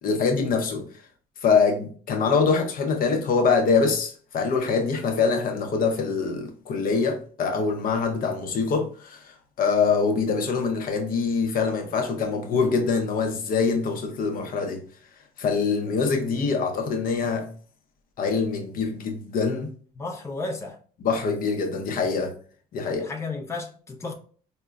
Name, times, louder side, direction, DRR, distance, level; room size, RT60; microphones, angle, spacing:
voice 1, 0.0-0.9 1.4-14.8 15.4-17.5 18.2-19.7 21.0-22.3 22.7-23.0, left 5 dB, 55° left, 0.7 m, -24 dB
voice 2, 20.0-20.8 22.8-24.1, left 3 dB, 15° left, 0.6 m, -33 dB
4.8 x 2.2 x 2.3 m
cardioid pair, 110°, 17 cm